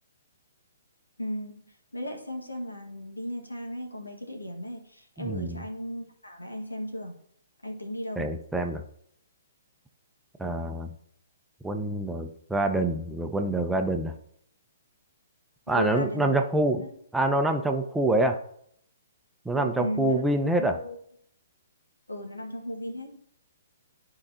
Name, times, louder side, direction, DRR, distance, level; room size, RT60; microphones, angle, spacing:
voice 1, 1.2-7.2 7.6-8.3 15.7-16.3 16.7-16.9 19.5-20.2 20.6-20.9 22.1-23.2, equal, 90° left, 1 dB, 1.7 m, -36 dB
voice 2, 5.2-5.6 8.2-8.8 10.4-10.9 11.6-14.1 15.7-16.8 17.1-18.4 19.4-20.8, right 2 dB, 5° right, 4 dB, 0.6 m, -26 dB
12.0 x 4.8 x 2.8 m, 0.67 s
figure-of-eight pair, 125°, 0 cm